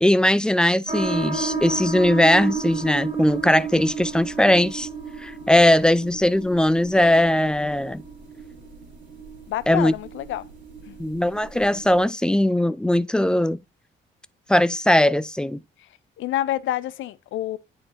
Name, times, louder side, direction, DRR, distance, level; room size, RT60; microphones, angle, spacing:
voice 1, 0.0-4.9 5.2-8.0 9.7-9.9 11.0-13.6 14.5-15.6, left 1 dB, 5° left, 0.3 m, -19 dB
sound 1, 0.9-12.0, right 5 dB, 45° right, 2.5 m, -33 dB
voice 2, 9.5-10.5 10.9-11.0 16.2-17.6, left 13 dB, 75° left, 0.5 m, -27 dB
8.8 x 4.4 x 2.6 m
cardioid pair, 90°, 20 cm